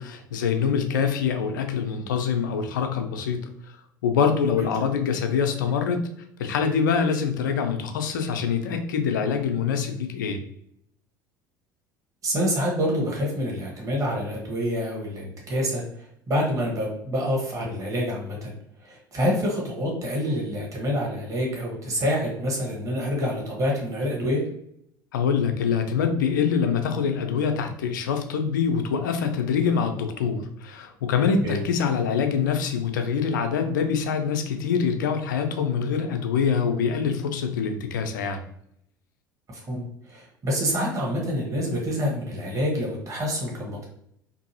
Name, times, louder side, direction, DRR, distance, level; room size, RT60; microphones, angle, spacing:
voice 1, 0.0-3.8 4.0-6.0 6.4-10.4 25.1-38.4, left 6 dB, 65° left, 6 dB, 0.4 m, -25 dB
voice 2, 12.2-15.8 16.3-18.5 18.8-24.4 31.4-31.6 39.5-43.8, equal, 30° right, -2 dB, 1.1 m, -27 dB
2.6 x 2.6 x 2.7 m, 0.73 s
figure-of-eight pair, 65°, 11 cm